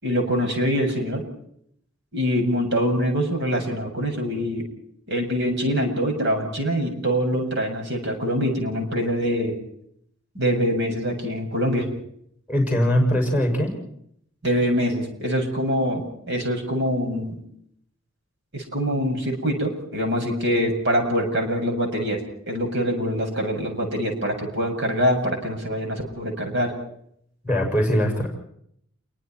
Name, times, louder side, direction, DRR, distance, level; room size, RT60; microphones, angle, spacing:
voice 1, 0.0-1.2 2.1-4.7 5.1-9.6 10.3-11.9 14.4-17.4 18.5-22.2 22.5-26.7, equal, 60° right, 3 dB, 7.5 m, -24 dB
voice 2, 12.5-13.7 27.4-28.3, equal, 5° right, 3 dB, 7.2 m, -21 dB
29.0 x 23.5 x 4.7 m, 0.70 s
head